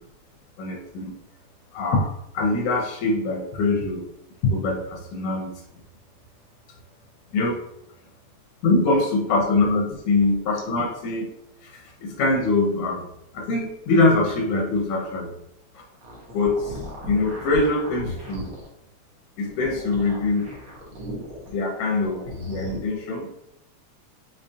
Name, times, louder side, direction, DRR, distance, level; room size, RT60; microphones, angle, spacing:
voice 1, 0.6-1.1 1.7-4.0 4.4-5.5 7.3-7.6 8.6-11.3 11.6-13.0 13.3-15.3 16.3-16.8 17.1-18.5 19.4-20.5 21.5-23.3, left 2 dB, 85° left, 0 dB, 2.2 m, -23 dB
sound 1, 15.9-18.7 19.4-21.5 21.9-22.8, left 1 dB, 65° right, 0.8 m, -36 dB
5.4 x 3.6 x 2.7 m, 0.78 s
omnidirectional pair, 3.3 m